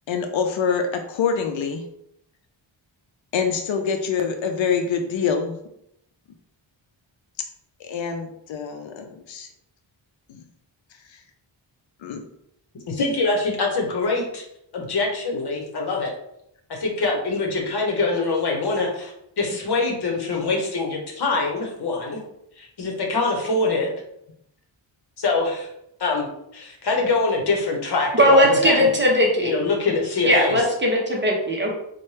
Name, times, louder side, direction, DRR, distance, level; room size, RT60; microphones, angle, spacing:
voice 1, 0.1-1.8 3.3-5.6 7.8-9.5 10.3-10.4 11.1-11.2 12.0-12.2, left 6 dB, 75° left, 6 dB, 0.5 m, -25 dB
voice 2, 12.9-14.4 14.7-16.1 16.7-22.2 22.6-23.9 25.2-25.7 26.0-26.3 26.5-28.9 29.4-30.6, left 3 dB, 55° left, 0 dB, 0.9 m, -24 dB
voice 3, 28.2-29.5 30.2-31.7, equal, 25° right, -1 dB, 0.7 m, -18 dB
4.2 x 2.2 x 3.2 m, 0.78 s
wide cardioid pair, 150°, 47 cm